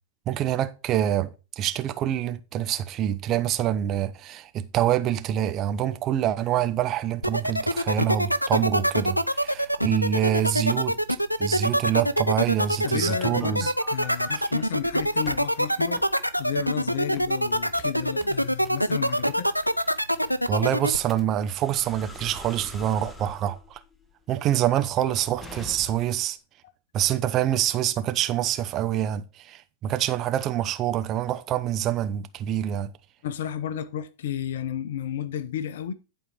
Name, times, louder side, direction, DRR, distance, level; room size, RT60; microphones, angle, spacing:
voice 1, 0.3-1.3 1.6-11.0 11.4-13.7 14.3-14.5 20.5-23.8 24.3-26.4 26.9-32.9, right 11 dB, 35° right, 0.8 m, -26 dB
sound 1, 7.2-21.0, equal, 90° left, 0.5 m, -24 dB
voice 2, 12.8-16.0 16.4-19.5 33.2-35.9, left 9 dB, 60° left, 0.8 m, -32 dB
sound 2, 13.0-14.3 14.8-15.4 16.0-16.1 16.6-16.8 17.2-26.2, left 1 dB, 10° left, 1.4 m, -45 dB
11.5 x 4.5 x 5.1 m
figure-of-eight pair, 90°, 0 cm